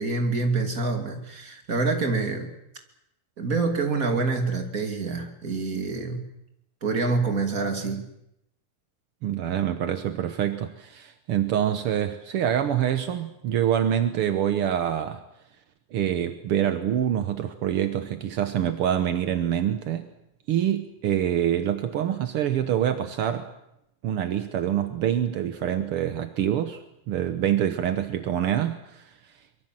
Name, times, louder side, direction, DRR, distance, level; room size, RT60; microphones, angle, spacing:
voice 1, 0.0-2.5 3.4-6.3 6.8-8.1, right 3 dB, 25° right, 5 dB, 2.7 m, -26 dB
voice 2, 9.2-15.2 15.9-20.1 20.5-23.5 24.0-29.1, right 10 dB, 70° right, 9 dB, 1.4 m, -26 dB
24.0 x 23.0 x 7.6 m, 0.82 s
omnidirectional pair, 3.9 m